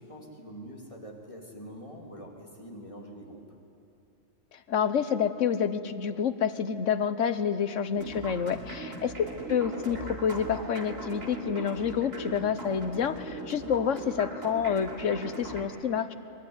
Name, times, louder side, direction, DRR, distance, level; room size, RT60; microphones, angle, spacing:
voice 1, 0.0-3.5 8.8-9.0, equal, 25° left, 0 dB, 3.2 m, -45 dB
voice 2, 4.5-9.1 9.5-16.1, left 7 dB, 70° left, 11 dB, 1.3 m, -28 dB
sound 1, 7.9-15.6, right 2 dB, 85° right, 3.4 m, -39 dB
23.0 x 22.5 x 9.7 m, 2.7 s
omnidirectional pair, 1.3 m